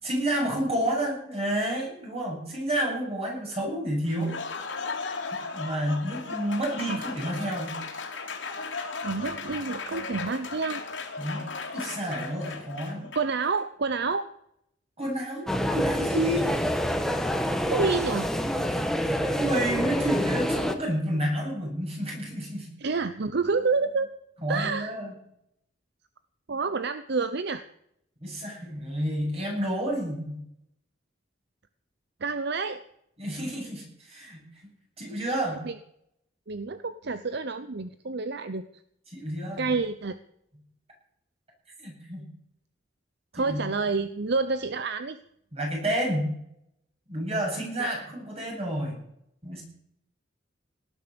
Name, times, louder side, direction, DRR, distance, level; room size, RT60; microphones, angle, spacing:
voice 1, 0.0-4.4 5.3-7.8 11.2-11.4 11.7-13.1 15.0-16.6 19.3-22.7 24.4-25.1 28.2-30.4 33.2-34.4 35.0-35.6 39.1-39.7 41.8-42.3 43.4-43.6 45.5-46.3 47.1-49.0 49.4-49.6, right 1 dB, 35° right, -1 dB, 7.9 m, -30 dB
Applause, 4.1-13.5, left 4 dB, 80° left, 3.4 m, -36 dB
voice 2, 9.0-10.8 13.1-14.3 17.7-18.3 22.8-24.1 24.5-24.9 26.5-27.6 32.2-32.8 35.6-35.7 36.5-38.6 39.6-40.2 43.3-45.2, right 4 dB, 65° right, 12 dB, 0.8 m, -28 dB
sound 1, 15.5-20.8, equal, 5° left, 1.4 m, -27 dB
18.5 x 10.5 x 6.9 m, 0.73 s
head